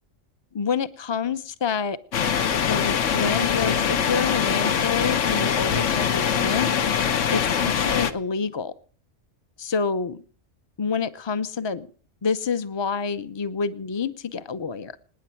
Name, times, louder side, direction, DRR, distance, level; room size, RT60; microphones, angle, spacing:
voice 1, 0.5-2.0 2.7-6.7 7.3-8.7 9.6-10.2 10.8-11.9 12.2-15.0, left 5 dB, 25° left, 12 dB, 0.7 m, -27 dB
sound 1, 2.1-8.1, left 7 dB, 75° left, 1.3 m, -23 dB
26.5 x 9.9 x 4.6 m, 0.42 s
omnidirectional pair, 1.3 m